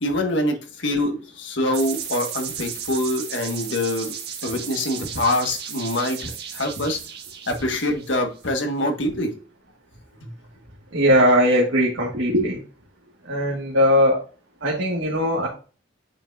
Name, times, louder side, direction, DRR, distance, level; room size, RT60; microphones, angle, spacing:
voice 1, 0.0-4.1 4.4-7.0 7.5-9.3 10.2-10.3, left 1 dB, 75° left, 3 dB, 1.6 m, -25 dB
sound 1, 1.7-8.4, right 8 dB, 60° right, 1.6 m, -34 dB
voice 2, 10.9-12.6 13.3-14.2 14.6-15.5, equal, 90° right, -3 dB, 1.8 m, -19 dB
8.8 x 5.8 x 2.6 m, 0.36 s
head